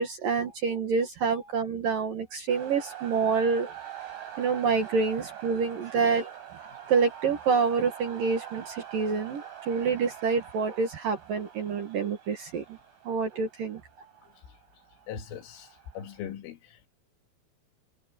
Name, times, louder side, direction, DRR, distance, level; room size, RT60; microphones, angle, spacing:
voice 1, 0.0-3.7 4.4-6.3 6.9-12.8 13.0-13.8, right 5 dB, 60° right, 2.7 m, -27 dB
sound 1, 2.5-16.3, right 10 dB, 80° right, 10.5 m, -45 dB
voice 2, 15.1-15.7 15.9-16.9, left 9 dB, 75° left, 4.4 m, -40 dB
omnidirectional pair, 5.8 m